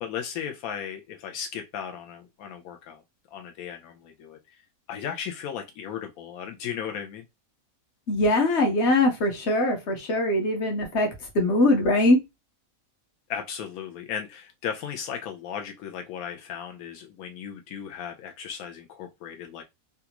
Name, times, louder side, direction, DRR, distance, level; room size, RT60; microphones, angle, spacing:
voice 1, 0.0-3.0 3.3-4.6 4.9-7.2 13.3-19.6, left 8 dB, 85° left, 1.0 m, -36 dB
voice 2, 8.1-11.1 11.3-12.2, left 1 dB, 55° left, 1.2 m, -22 dB
3.4 x 2.4 x 2.9 m
omnidirectional pair, 1.5 m